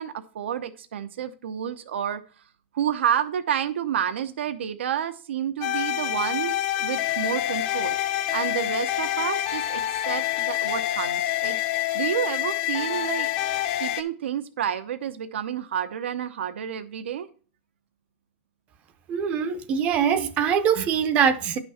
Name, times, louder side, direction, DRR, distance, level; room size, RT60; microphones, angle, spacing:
voice 1, 0.0-2.2 2.7-8.0 8.3-11.6 11.9-13.3 13.8-17.3, right 9 dB, 80° right, 0.8 m, -29 dB
sound 1, 5.6-14.0, left 13 dB, 35° left, 0.7 m, -27 dB
voice 2, 19.1-21.6, right 7 dB, 20° right, 0.6 m, -23 dB
10.0 x 6.1 x 4.2 m
supercardioid pair, 170°, 6 cm